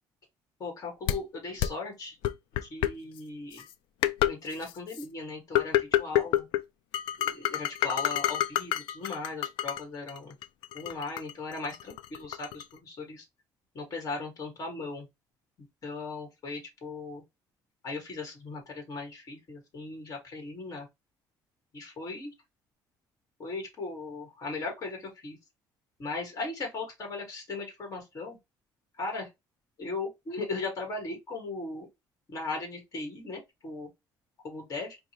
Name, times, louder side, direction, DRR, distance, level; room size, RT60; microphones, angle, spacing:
voice 1, 0.6-2.2 2.6-3.6 4.3-6.5 7.2-10.3 10.7-13.2 13.7-15.1 15.8-17.2 17.8-20.9 21.7-22.3 23.4-25.4 26.0-28.4 29.0-29.3 29.8-31.9 32.3-33.9 34.4-35.0, left 3 dB, 40° left, 1.8 m, -38 dB
sound 1, 1.1-1.2 1.6-1.7 2.2-2.9 3.6-3.7 4.0-4.3 4.6-5.0 5.6-6.6 6.9-9.8 10.1-12.6, left 13 dB, 90° left, 0.4 m, -27 dB
5.1 x 2.4 x 3.0 m
cardioid pair, 120°, 8 cm